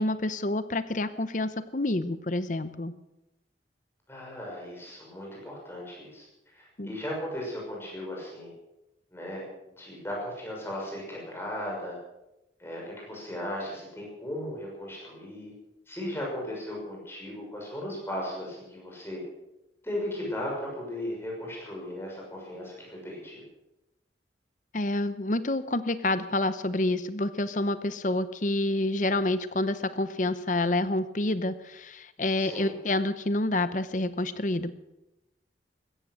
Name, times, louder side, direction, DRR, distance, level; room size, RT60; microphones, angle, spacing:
voice 1, 0.0-2.9 6.8-6.9 24.7-34.7, left 2 dB, 45° left, 13 dB, 0.9 m, -28 dB
voice 2, 4.1-6.3 6.5-8.5 9.1-9.4 9.8-12.0 12.6-15.5 15.9-19.2 19.8-23.4 32.4-32.8, left 1 dB, 15° left, -2 dB, 6.2 m, -36 dB
16.0 x 14.0 x 6.4 m, 0.91 s
head